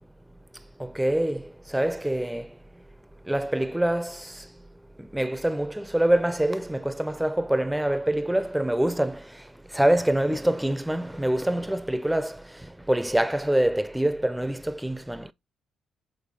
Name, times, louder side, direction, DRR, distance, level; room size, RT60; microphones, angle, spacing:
voice 1, 0.8-1.4 1.7-2.5 3.3-4.2 5.1-9.2 9.7-12.4 12.9-15.3, right 1 dB, 5° right, 0.6 m, -25 dB
7.4 x 3.9 x 3.8 m
cardioid pair, 90°, 0 cm